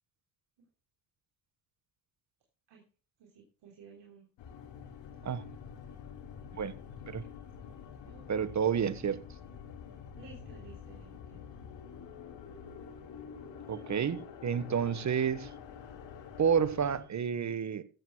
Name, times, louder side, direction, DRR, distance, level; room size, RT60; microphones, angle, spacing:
voice 1, 3.2-4.3 7.0-7.3 8.0-8.3 10.2-11.4, right 5 dB, 65° right, 3.4 m, -55 dB
sound 1, 4.4-17.0, left 7 dB, 70° left, 2.7 m, -47 dB
voice 2, 8.3-9.2 13.7-15.5 16.4-17.8, right 7 dB, 40° right, 1.2 m, -30 dB
15.0 x 14.0 x 2.2 m
supercardioid pair, 70°, 45 cm